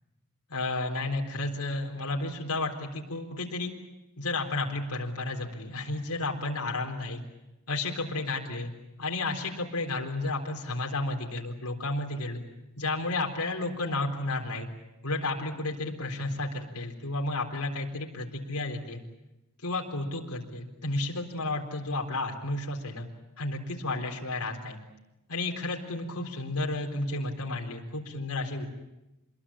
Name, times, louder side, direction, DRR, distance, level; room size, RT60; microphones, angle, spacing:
voice 1, 0.5-3.7 4.2-7.2 7.7-8.7 9.0-12.4 12.8-14.7 15.0-19.0 19.6-23.1 23.4-24.8 25.3-28.7, left 2 dB, 80° left, 0 dB, 4.0 m, -32 dB
27.0 x 22.0 x 8.7 m, 0.99 s
head